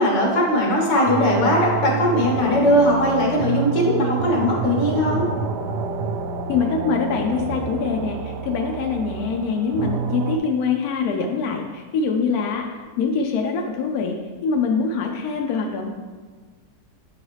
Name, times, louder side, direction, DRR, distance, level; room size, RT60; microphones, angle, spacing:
voice 1, 0.0-5.3, equal, 90° left, -2 dB, 1.9 m, -19 dB
sound 1, 1.1-10.4, right 5 dB, 80° right, 1.2 m, -28 dB
voice 2, 6.5-12.7 13.0-15.9, left 5 dB, 70° left, 2 dB, 1.0 m, -24 dB
8.7 x 4.0 x 3.1 m, 1.5 s
omnidirectional pair, 1.8 m